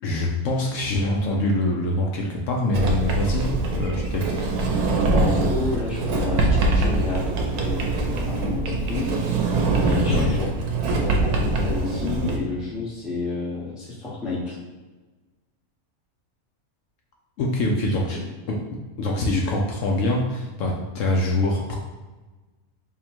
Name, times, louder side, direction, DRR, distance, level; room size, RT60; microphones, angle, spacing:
voice 1, 0.0-4.4 10.1-10.3 17.4-18.2 18.5-21.8, left 1 dB, 70° left, -1 dB, 0.8 m, -24 dB
Sliding door, 2.7-12.4, right 2 dB, 90° right, 1.1 m, -23 dB
voice 2, 5.1-9.1 9.8-10.5 10.9-14.6 18.1-18.2, left 3 dB, ahead, -6 dB, 0.6 m, -30 dB
3.6 x 2.1 x 4.3 m, 1.2 s
omnidirectional pair, 1.5 m